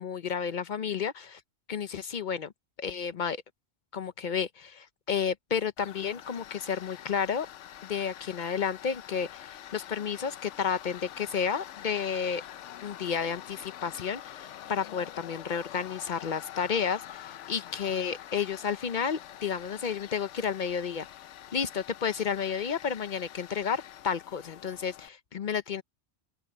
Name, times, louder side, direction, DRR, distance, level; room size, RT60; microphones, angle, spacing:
voice 1, 0.0-1.4 1.7-2.5 2.8-3.4 3.9-7.5 7.9-12.4 12.8-21.1 21.5-25.8, left 7 dB, 50° left, 0.7 m, -31 dB
Tools, 5.8-25.1, left 11 dB, 85° left, 1.0 m, -46 dB
open air
omnidirectional pair, 1.2 m